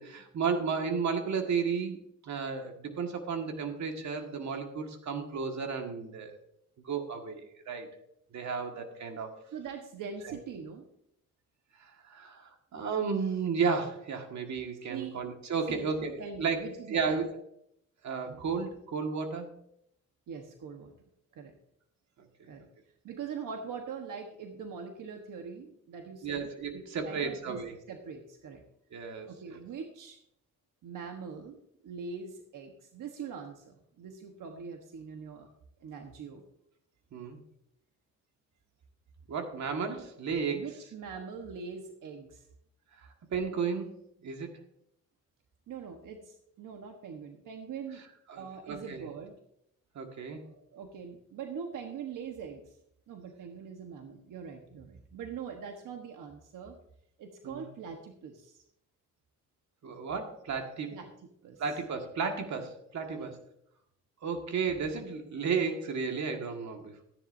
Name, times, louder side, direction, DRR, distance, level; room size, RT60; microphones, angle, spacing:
voice 1, 0.0-6.4 6.8-7.9 8.3-9.3 10.3-10.4 11.8-16.6 16.9-17.3 18.0-19.5 26.2-27.8 28.9-29.6 37.1-37.4 39.3-40.6 43.3-43.9 44.2-44.5 48.3-49.1 50.0-50.4 57.4-57.7 59.8-61.0 61.6-63.4 64.2-67.0, right 5 dB, 60° right, 4 dB, 1.9 m, -33 dB
voice 2, 9.5-10.9 14.9-15.2 15.7-17.2 18.2-18.5 20.3-20.9 21.3-21.5 22.5-22.6 23.0-27.6 27.9-28.6 29.3-30.2 30.8-35.5 35.8-36.4 40.5-42.5 45.7-48.0 48.4-49.3 50.4-52.8 53.1-56.8 57.2-58.6 60.9-61.1 61.4-61.6 63.2-63.3, right 6 dB, 85° right, 3 dB, 1.3 m, -42 dB
14.0 x 10.5 x 2.7 m, 0.73 s
cardioid pair, 130°, 31 cm